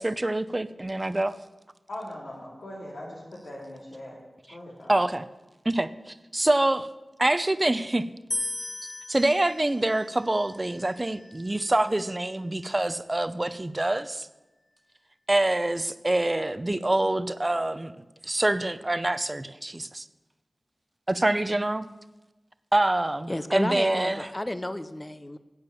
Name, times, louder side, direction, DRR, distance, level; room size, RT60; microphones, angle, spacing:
voice 1, 0.0-1.4 4.9-5.3 5.6-6.9 7.2-8.1 9.1-14.3 15.3-17.9 18.2-20.0 21.1-21.9 22.7-24.3, right 1 dB, 30° right, 13 dB, 0.6 m, -26 dB
voice 2, 1.9-4.2 4.5-4.9, left 1 dB, 85° left, -4 dB, 2.8 m, -40 dB
sound 1, 8.3-11.5, left 2 dB, 40° left, 1.4 m, -37 dB
voice 3, 23.3-25.4, left 1 dB, 20° left, 12 dB, 0.6 m, -32 dB
11.0 x 8.9 x 7.1 m, 1.1 s
wide cardioid pair, 65°, 0 cm